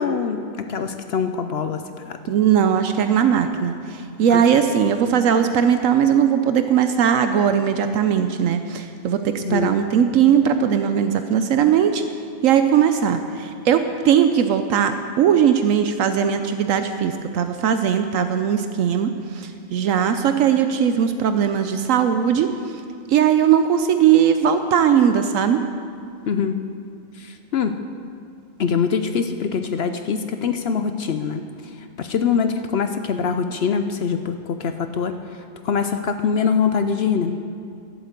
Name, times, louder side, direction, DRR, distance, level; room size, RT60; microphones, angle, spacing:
voice 1, 0.0-2.2 4.3-4.6 9.4-9.7 26.3-26.6 27.2-27.7 28.6-31.4 32.0-35.1 35.6-37.4, left 6 dB, 60° left, 8 dB, 0.7 m, -23 dB
voice 2, 2.3-12.0 12.4-22.8 23.1-25.6, right 8 dB, 75° right, 8 dB, 1.0 m, -19 dB
12.0 x 8.0 x 8.1 m, 2.4 s
omnidirectional pair, 1.4 m